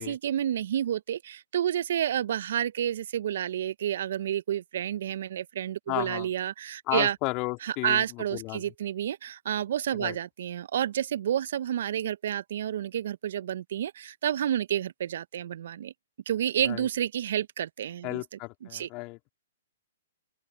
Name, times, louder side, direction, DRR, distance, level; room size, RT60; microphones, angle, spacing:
voice 1, 0.0-7.2 7.6-15.9 16.3-18.2 18.7-18.9, right 10 dB, 60° right, 0.9 m, -30 dB
voice 2, 5.9-6.3 6.9-8.7 9.9-10.2 16.6-16.9 18.0-19.2, left 25 dB, 35° left, 3.7 m, -33 dB
open air
hypercardioid pair, 120°, 0 cm